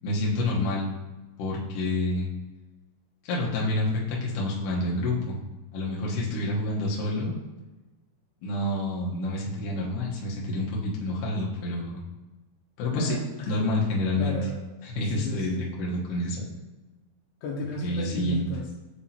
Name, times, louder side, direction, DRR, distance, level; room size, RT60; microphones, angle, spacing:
voice 1, 0.0-0.9 1.4-2.3 3.2-5.4 5.7-7.3 8.4-12.0 12.8-13.2 13.5-14.4 14.8-16.5 17.8-18.5, left 1 dB, 65° left, -4 dB, 2.3 m, -28 dB
voice 2, 12.9-13.6 14.2-14.5 15.1-15.7 17.4-18.8, left 3 dB, 80° left, -3 dB, 2.7 m, -34 dB
9.7 x 3.6 x 2.9 m, 1.2 s
omnidirectional pair, 4.9 m